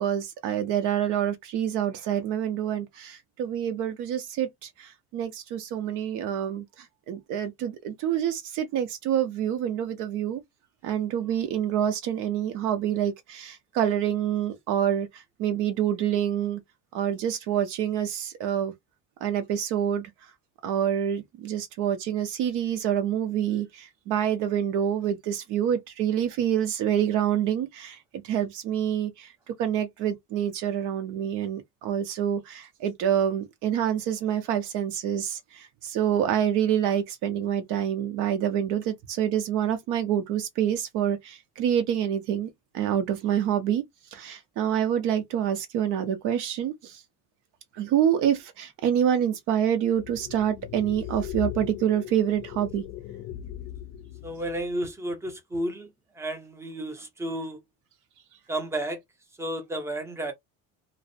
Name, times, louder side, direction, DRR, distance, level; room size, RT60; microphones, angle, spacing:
voice 1, 0.0-10.4 10.8-16.6 16.9-18.7 19.2-20.1 20.6-28.0 28.2-29.3 29.6-42.5 42.7-43.8 44.1-47.0 47.7-52.8, right 10 dB, 70° right, 0.6 m, -27 dB
sound 1, 49.9-54.8, left 12 dB, 60° left, 0.5 m, -38 dB
voice 2, 54.2-55.9 56.2-57.6 58.5-59.0 59.4-60.3, right 1 dB, 10° right, 0.5 m, -32 dB
2.5 x 2.0 x 2.5 m
cardioid pair, 150°, 32 cm